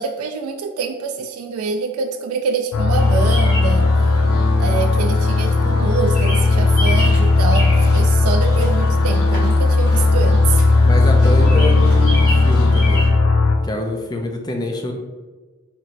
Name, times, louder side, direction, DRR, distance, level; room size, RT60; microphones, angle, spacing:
voice 1, 0.0-3.9 4.6-10.6, right 5 dB, 75° right, 6 dB, 0.3 m, -25 dB
sound 1, 2.7-13.6, left 3 dB, 80° left, 0.4 m, -15 dB
Bird vocalization bird call bird song, 2.9-13.1, equal, 45° left, 1.5 m, -32 dB
voice 2, 10.8-13.1 13.6-14.9, left 1 dB, 20° left, 3 dB, 0.4 m, -26 dB
4.3 x 2.9 x 2.5 m, 1.3 s
head